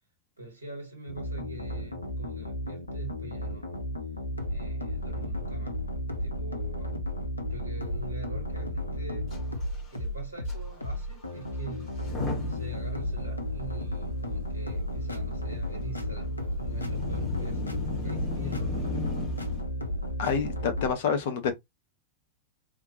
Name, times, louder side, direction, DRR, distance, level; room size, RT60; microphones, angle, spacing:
voice 1, 0.4-3.8 4.5-5.8 6.2-7.0 7.5-9.4 9.9-11.9 12.4-19.2, right 2 dB, 80° right, 1.4 m, -45 dB
sound 1, 1.1-20.9, equal, 80° left, 0.7 m, -33 dB
Motor vehicle (road) / Engine starting / Accelerating revving vroom, 9.3-9.4 9.6-9.9 10.5-10.6 11.8-19.6, left 3 dB, 25° left, 2.2 m, -36 dB
voice 2, 20.2-21.5, left 6 dB, 55° left, 1.1 m, -27 dB
4.3 x 2.8 x 2.8 m
figure-of-eight pair, 90°, 0 cm